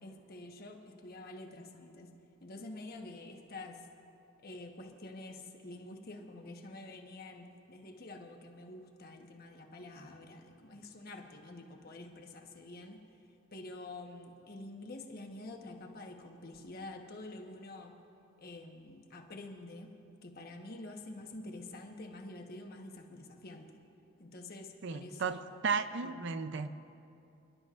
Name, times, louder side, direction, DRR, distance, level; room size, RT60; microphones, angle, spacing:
voice 1, 0.0-2.1 2.4-3.8 4.4-13.0 13.5-18.0 18.4-19.9 20.2-23.7 24.2-25.4 26.0-26.4, left 2 dB, 50° left, 3 dB, 1.2 m, -48 dB
voice 2, 24.8-26.7, right 5 dB, 65° right, 11 dB, 0.5 m, -34 dB
28.5 x 11.5 x 2.5 m, 2.7 s
head